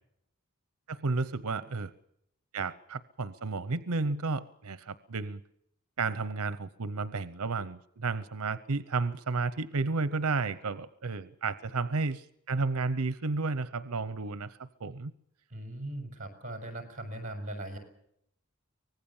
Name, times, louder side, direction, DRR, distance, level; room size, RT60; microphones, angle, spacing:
voice 1, 0.9-1.9 2.5-5.4 6.0-15.1, right 3 dB, 90° right, 15 dB, 0.8 m, -32 dB
voice 2, 15.5-17.8, right 1 dB, 35° right, 5 dB, 5.7 m, -39 dB
24.5 x 19.0 x 7.2 m, 0.74 s
head